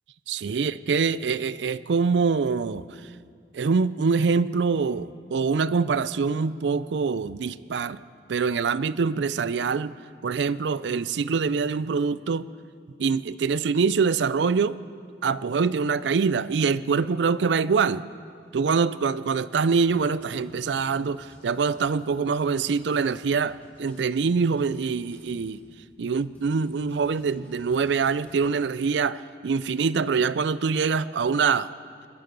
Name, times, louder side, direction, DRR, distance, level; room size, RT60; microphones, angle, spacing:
voice 1, 0.3-2.8 3.5-8.0 8.3-9.9 10.2-12.5 13.0-14.8 15.2-18.0 18.5-25.6 26.0-31.7, right 5 dB, 85° right, 17 dB, 0.4 m, -24 dB
sound 1, 19.8-25.7 26.1-28.5, equal, 10° left, 3.5 m, -56 dB
21.0 x 13.0 x 5.2 m, 2.2 s
head